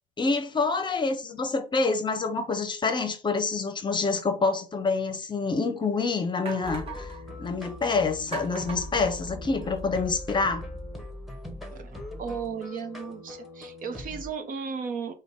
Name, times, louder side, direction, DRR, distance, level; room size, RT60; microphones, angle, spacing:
voice 1, 0.2-7.1 7.4-10.6, left 4 dB, 25° left, 0.7 m, -27 dB
sound 1, 5.1-5.2 5.8-5.9 6.4-7.2 8.3-9.8, right 5 dB, 35° right, 1.5 m, -40 dB
sound 2, 6.6-14.3, left 1 dB, ahead, 1.1 m, -40 dB
voice 2, 11.7-15.1, right 6 dB, 55° right, 0.8 m, -35 dB
4.9 x 2.2 x 3.8 m
cardioid pair, 110°, 17 cm